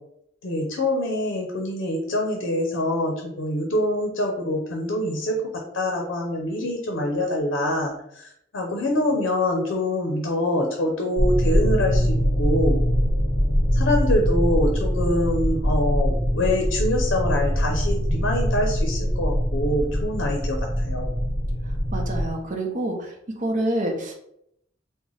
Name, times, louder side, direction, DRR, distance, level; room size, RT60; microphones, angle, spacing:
voice 1, 0.4-5.5 5.7-8.3 8.5-12.8 13.7-21.1, left 1 dB, 75° left, 2 dB, 0.6 m, -25 dB
sound 1, 11.2-22.3, equal, 25° right, 1.1 m, -23 dB
voice 2, 21.9-24.1, right 1 dB, 40° right, 2 dB, 0.6 m, -27 dB
3.8 x 2.1 x 3.1 m, 0.75 s
head